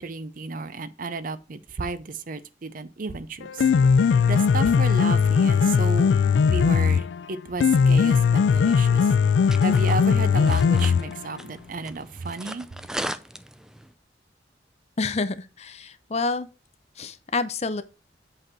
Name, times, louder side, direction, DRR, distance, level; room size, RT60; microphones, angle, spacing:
voice 1, 0.0-3.6 4.3-6.2 6.5-9.1 9.6-12.7, right 3 dB, 50° right, 0.6 m, -33 dB
Piano, 3.4-11.4, left 6 dB, 75° left, 0.3 m, -19 dB
sound 1, 9.0-13.9, right 1 dB, 5° right, 0.4 m, -38 dB
voice 2, 15.0-16.5 17.0-17.8, left 3 dB, 35° left, 0.6 m, -28 dB
7.9 x 3.9 x 5.9 m
head